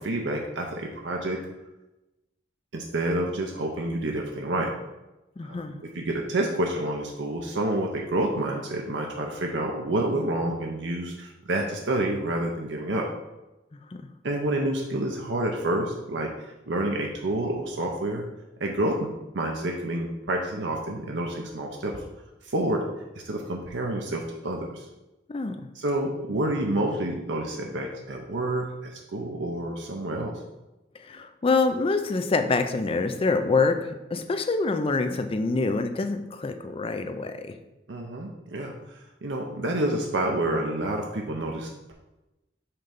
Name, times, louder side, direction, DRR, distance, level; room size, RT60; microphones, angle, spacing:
voice 1, 0.0-1.4 2.7-4.7 5.4-5.6 5.9-13.1 14.2-16.3 16.7-18.2 18.6-19.1 19.3-22.0 22.4-22.8 23.2-24.9 25.8-30.3 37.9-41.9, right 1 dB, 75° right, 1 dB, 0.7 m, -28 dB
voice 2, 5.4-5.8 13.7-14.0 25.3-25.7 30.9-37.6, left 3 dB, 30° left, 8 dB, 0.4 m, -26 dB
5.8 x 3.3 x 5.2 m, 0.99 s
head